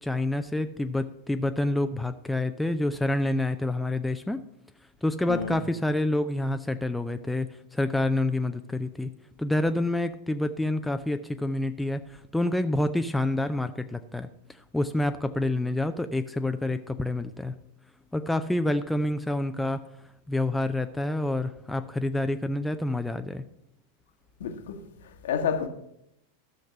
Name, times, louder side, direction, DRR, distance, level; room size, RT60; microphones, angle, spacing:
voice 1, 0.0-4.4 5.0-9.1 9.4-17.5 18.1-19.8 20.3-23.4, left 1 dB, 5° left, 0.5 m, -28 dB
voice 2, 24.4-24.8 25.2-25.7, left 7 dB, 60° left, 1.2 m, -29 dB
13.5 x 6.5 x 5.7 m
figure-of-eight pair, 90°, 0 cm